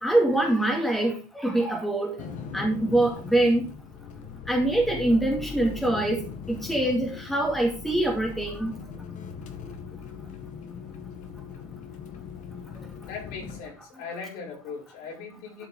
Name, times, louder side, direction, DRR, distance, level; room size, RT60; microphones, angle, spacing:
voice 1, 0.0-2.2 2.5-3.6 4.5-8.7, right 1 dB, ahead, 0 dB, 2.3 m, -24 dB
sound 1, 2.2-13.6, left 5 dB, 40° left, 1.9 m, -40 dB
voice 2, 13.1-15.7, left 5 dB, 60° left, -1 dB, 6.1 m, -39 dB
12.5 x 5.9 x 5.5 m, 0.34 s
cardioid pair, 165°, 19 cm